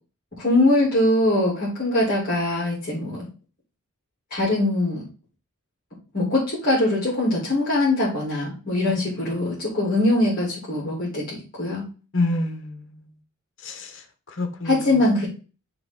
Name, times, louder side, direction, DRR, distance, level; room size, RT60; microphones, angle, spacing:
voice 1, 0.4-3.3 4.3-5.0 6.1-11.8 14.6-15.3, left 1 dB, 40° left, 2.8 m, -22 dB
voice 2, 8.9-9.3 12.1-13.1 13.6-14.0 14.3-15.0, left 2 dB, 60° left, 1.3 m, -28 dB
5.7 x 3.4 x 5.8 m
head